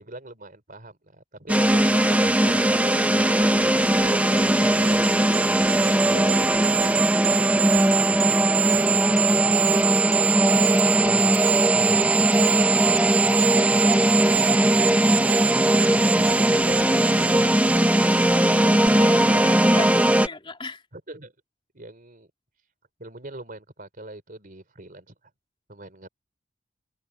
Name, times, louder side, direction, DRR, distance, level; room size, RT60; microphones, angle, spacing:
voice 1, 0.0-5.3 5.6-9.8 10.9-12.1 12.5-12.9 16.0-18.1 18.5-19.6 20.9-21.3 21.7-22.3 23.0-25.1 25.7-26.1, right 2 dB, 45° right, 4.1 m, -41 dB
sound 1, 1.5-20.3, right 1 dB, 5° right, 0.8 m, -20 dB
sound 2, 3.8-18.4 18.7-18.9, right 9 dB, 25° right, 0.4 m, -26 dB
voice 2, 18.9-20.9, left 3 dB, 25° left, 3.4 m, -37 dB
head